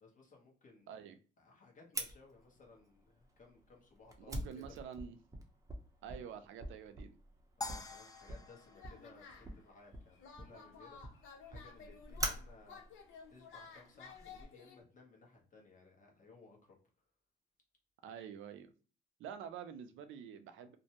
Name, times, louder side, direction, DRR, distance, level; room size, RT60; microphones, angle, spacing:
voice 1, 0.0-0.9 1.4-4.6 7.6-12.9 13.3-16.7, left 3 dB, 40° left, 0 dB, 1.0 m, -60 dB
voice 2, 0.9-1.2 4.2-5.2 6.0-7.2 18.0-18.7 19.2-20.8, right 8 dB, 80° right, 9 dB, 0.4 m, -48 dB
Fire, 1.9-14.4, right 1 dB, 15° right, 0.6 m, -46 dB
sound 1, 7.6-10.0, left 2 dB, 20° left, 0.4 m, -47 dB
sound 2, 8.6-9.6 10.1-14.8, left 5 dB, 80° left, 0.6 m, -55 dB
2.5 x 2.1 x 2.8 m, 0.38 s
cardioid pair, 90°, 20 cm